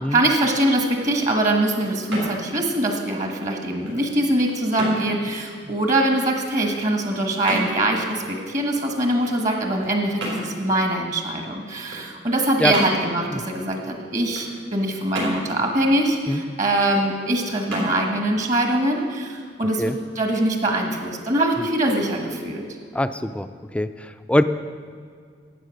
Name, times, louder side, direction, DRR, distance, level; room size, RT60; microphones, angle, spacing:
voice 1, 0.1-22.7, right 1 dB, 40° right, 3 dB, 1.3 m, -23 dB
sound 1, 0.8-19.6, equal, 80° right, 3.7 m, -35 dB
voice 2, 22.9-23.5 23.7-24.4, left 1 dB, 5° left, 10 dB, 0.3 m, -22 dB
12.0 x 8.5 x 6.3 m, 2.1 s
head